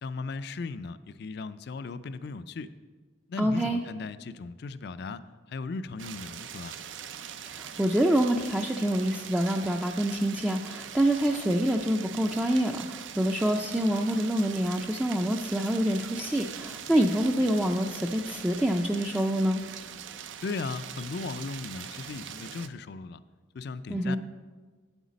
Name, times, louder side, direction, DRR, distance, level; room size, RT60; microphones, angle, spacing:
voice 1, 0.0-2.7 3.3-6.8 20.4-23.2 23.5-24.2, left 4 dB, 60° left, 14 dB, 0.4 m, -37 dB
voice 2, 3.4-3.8 7.5-19.6 23.9-24.2, right 1 dB, 5° right, 1 dB, 0.4 m, -26 dB
sound 1, 6.0-22.7, right 8 dB, 80° right, 0.5 m, -42 dB
8.5 x 8.1 x 5.1 m, 1.4 s
head